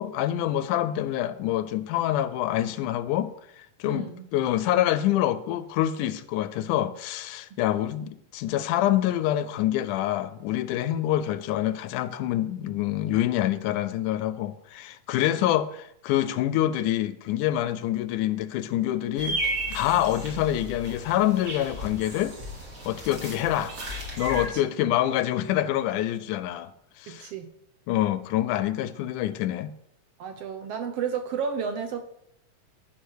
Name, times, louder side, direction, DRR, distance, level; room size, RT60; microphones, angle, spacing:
voice 1, 0.0-3.3 3.6-19.4 19.7-22.4 22.9-23.7 24.2-26.7 27.0-27.3 27.9-29.7, left 13 dB, 90° left, 2.1 m, -26 dB
voice 2, 3.8-4.3 7.5-7.6 24.5-24.7 27.1-27.5 30.2-32.0, right 6 dB, 70° right, 1.5 m, -32 dB
sound 1, 19.2-24.5, right 1 dB, 30° right, 2.4 m, -34 dB
13.5 x 5.1 x 6.4 m
omnidirectional pair, 3.5 m